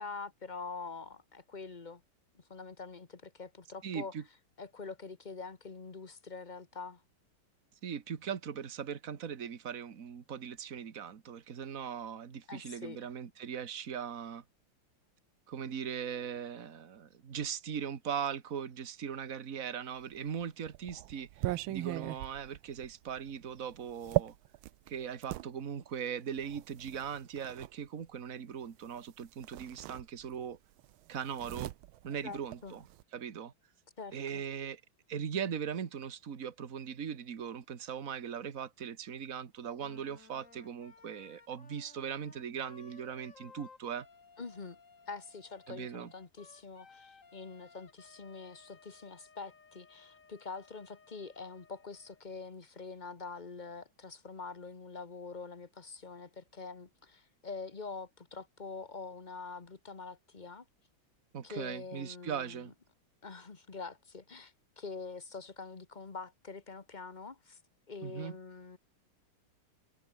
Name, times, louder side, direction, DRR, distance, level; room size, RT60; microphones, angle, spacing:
voice 1, 0.0-2.0 2.3-4.1 4.6-7.0 12.5-13.0 32.2-32.8 34.0-34.4 44.4-44.8 45.1-60.6 61.4-62.7 63.2-67.6 67.9-68.8, left 4 dB, 25° left, 1.4 m, -45 dB
voice 2, 3.8-4.2 7.8-14.4 15.5-24.4 24.9-30.6 31.1-31.7 32.0-32.9 33.1-33.5 34.1-34.8 35.1-44.1 45.7-46.1 61.3-62.7 68.0-68.4, right 8 dB, 45° right, 1.9 m, -39 dB
sound 1, 20.2-25.5 26.4-27.7 29.0-29.1 29.4-30.5 30.8-33.0, right 16 dB, 85° right, 1.5 m, -38 dB
Wind instrument woodwind instrument, 39.8-52.2, left 5 dB, 40° left, 2.4 m, -59 dB
omnidirectional pair, 2.2 m